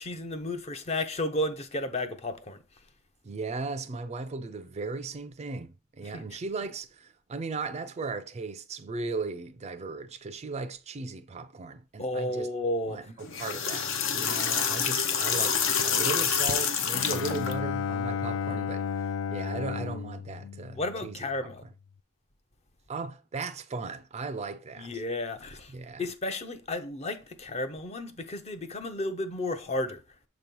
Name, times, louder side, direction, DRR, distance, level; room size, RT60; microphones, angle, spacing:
voice 1, 0.0-2.6 6.1-6.2 12.0-13.0 20.7-21.6 24.8-25.7 26.0-30.0, left 1 dB, 30° left, 0.6 m, -32 dB
voice 2, 3.2-12.5 12.9-21.3 22.9-25.0 25.7-26.0, right 4 dB, 30° right, 0.4 m, -37 dB
sound 1, 13.2-17.5, left 7 dB, 65° left, 0.7 m, -27 dB
Bowed string instrument, 16.9-21.3, left 7 dB, 85° left, 0.3 m, -33 dB
6.6 x 2.9 x 5.3 m
head